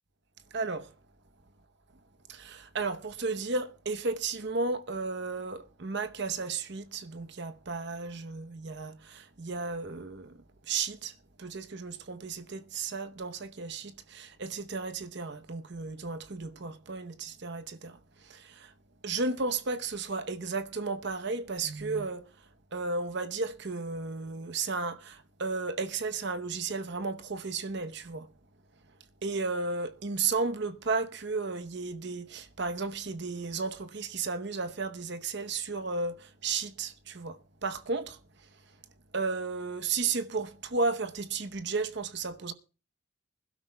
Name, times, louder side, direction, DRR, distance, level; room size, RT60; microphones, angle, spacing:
voice 1, 0.5-0.9 2.3-18.7 19.0-28.3 29.2-38.5 39.1-42.5, right 4 dB, 60° right, 0.9 m, -34 dB
24.5 x 12.5 x 2.3 m
head